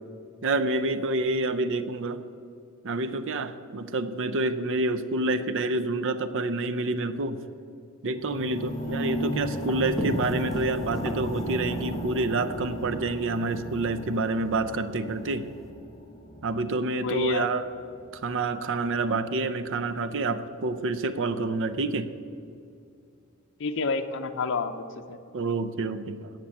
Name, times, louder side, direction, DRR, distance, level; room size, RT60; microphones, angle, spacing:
voice 1, 0.4-2.2 2.8-7.4 8.0-15.5 16.4-17.7 18.1-22.1 25.3-26.3, right 2 dB, 60° right, 12 dB, 0.6 m, -28 dB
sound 1, 8.1-18.2 18.9-19.0, equal, 25° left, 1.0 m, -36 dB
sound 2, 8.5-15.7, equal, ahead, 1.4 m, -39 dB
voice 2, 17.0-17.5 23.6-25.2, left 4 dB, 55° left, 6 dB, 0.6 m, -29 dB
10.0 x 7.5 x 8.4 m, 2.5 s
head